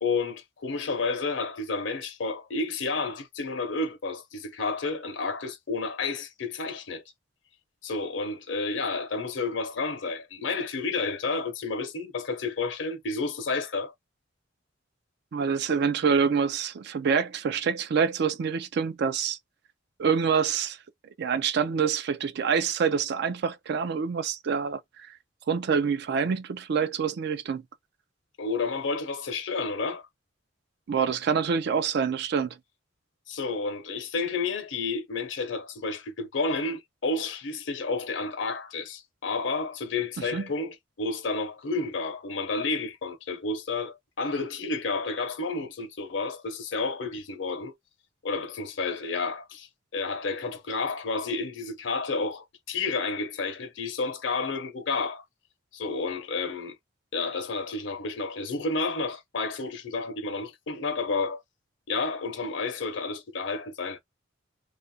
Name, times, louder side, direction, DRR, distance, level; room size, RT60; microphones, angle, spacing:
voice 1, 0.0-7.0 7.8-13.9 28.4-30.1 33.3-47.7 48.2-55.2 55.7-56.8 57.1-61.4 61.9-64.0, left 3 dB, 70° left, 0.6 m, -31 dB
voice 2, 15.3-19.4 20.0-20.8 21.2-24.8 25.5-27.6 30.9-32.6 40.3-40.5, right 6 dB, 55° right, 0.4 m, -26 dB
2.4 x 2.0 x 2.7 m
head